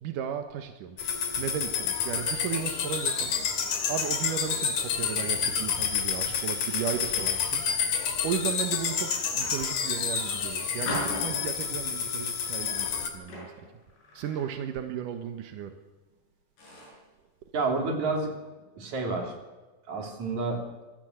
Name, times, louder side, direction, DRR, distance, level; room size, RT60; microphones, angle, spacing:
voice 1, 0.0-3.3 3.9-7.6 8.2-13.5 14.1-15.7, right 9 dB, 70° right, 6 dB, 2.1 m, -35 dB
sound 1, 1.0-13.1, left 6 dB, 50° left, 3.3 m, -29 dB
sound 2, 3.0-4.8 5.2-5.4 6.0-6.1 6.6-7.6 8.2-8.5 9.2-10.2 10.9-11.9 12.6-15.0 15.3-15.6 16.1-16.2 16.6-17.1, left 1 dB, 65° left, 9.9 m, -41 dB
voice 2, 17.5-18.3 18.8-19.3 19.9-20.6, right 3 dB, 45° right, 2 dB, 4.1 m, -29 dB
25.5 x 16.0 x 8.0 m, 1.3 s
omnidirectional pair, 5.3 m